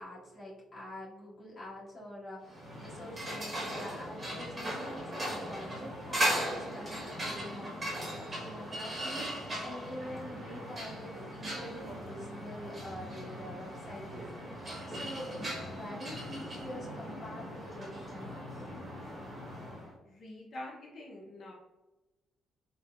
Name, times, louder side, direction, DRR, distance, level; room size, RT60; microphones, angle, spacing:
voice 1, 0.0-7.8 8.3-18.8, equal, 30° left, -8 dB, 1.4 m, -46 dB
sound 1, 2.5-19.9, equal, 25° right, 1.0 m, -38 dB
voice 2, 20.0-21.5, left 1 dB, 50° left, -2 dB, 0.5 m, -45 dB
4.2 x 2.1 x 2.3 m, 1.1 s
cardioid pair, 130°, 0 cm